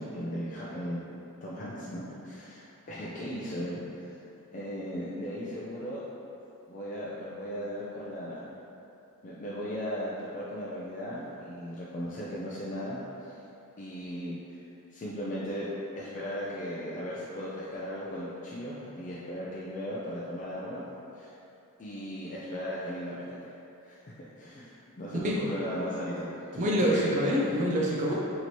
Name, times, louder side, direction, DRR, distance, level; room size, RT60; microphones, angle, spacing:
voice 1, 0.0-3.8 4.5-6.0 6.7-8.5 9.2-13.4 13.8-14.6 14.9-15.7 16.0-20.8 21.1-21.3 21.8-23.4 23.8-24.0 24.4-27.2 27.8-28.0, equal, 35° left, -7 dB, 0.4 m, -37 dB
voice 2, 26.6-28.1, equal, 35° right, -4 dB, 0.4 m, -26 dB
3.0 x 2.7 x 4.3 m, 2.9 s
head